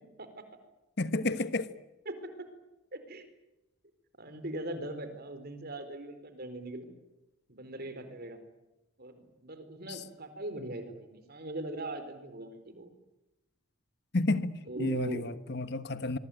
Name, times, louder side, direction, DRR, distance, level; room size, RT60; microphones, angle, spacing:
voice 1, 1.0-1.7 9.9-10.0 14.1-16.2, left 2 dB, 50° left, 1.3 m, -31 dB
voice 2, 2.9-3.3 4.2-6.9 7.5-8.4 9.0-12.9 14.7-15.3, right 1 dB, 45° right, 4.3 m, -40 dB
25.0 x 23.5 x 9.2 m
head